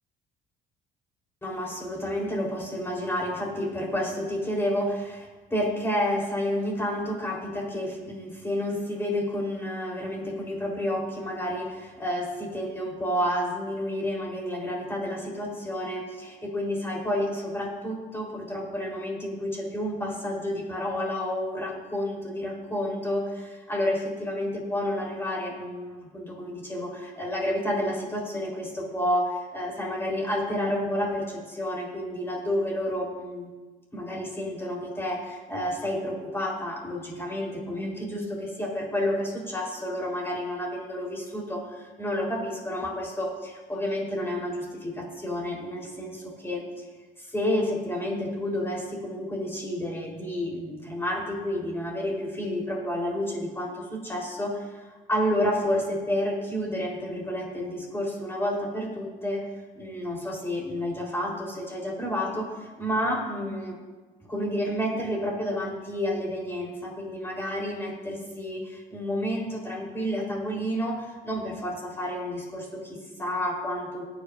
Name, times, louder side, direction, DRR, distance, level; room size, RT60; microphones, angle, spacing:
voice 1, 1.4-33.5 33.9-46.8 47.2-59.4 59.7-63.8 64.3-74.1, left 1 dB, 15° left, -2 dB, 4.1 m, -30 dB
20.0 x 9.7 x 2.7 m, 1.3 s
cardioid pair, 110°, 17 cm